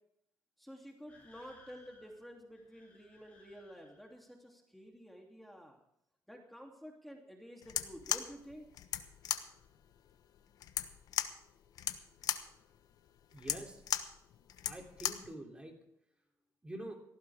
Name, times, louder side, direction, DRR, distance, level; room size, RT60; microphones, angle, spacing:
voice 1, 0.6-5.8 6.3-8.7, equal, ahead, 1 dB, 3.0 m, -51 dB
sound 1, 1.1-4.2, left 2 dB, 20° left, 7.8 m, -63 dB
sound 2, 7.6-15.3, left 10 dB, 75° left, 1.1 m, -38 dB
voice 2, 13.3-13.8 14.6-15.8 16.6-17.0, right 1 dB, 15° right, 2 dB, 3.1 m, -46 dB
18.0 x 15.5 x 3.6 m, 0.75 s
cardioid pair, 105°, 6 cm